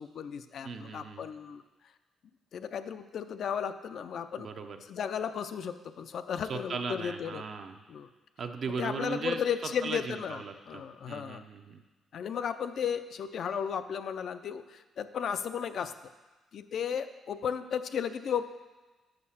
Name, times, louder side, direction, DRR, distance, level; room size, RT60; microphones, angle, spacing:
voice 1, 0.0-1.6 2.5-4.5 4.9-7.5 7.9-8.1 8.8-11.4 12.1-15.9 16.5-18.4, left 7 dB, 65° left, 10 dB, 0.4 m, -34 dB
voice 2, 0.6-1.2 4.4-4.8 6.5-7.8 8.4-9.4 9.8-11.8, right 5 dB, 55° right, 6 dB, 0.6 m, -38 dB
6.6 x 5.6 x 5.6 m, 1.2 s
cardioid pair, 90°, 0 cm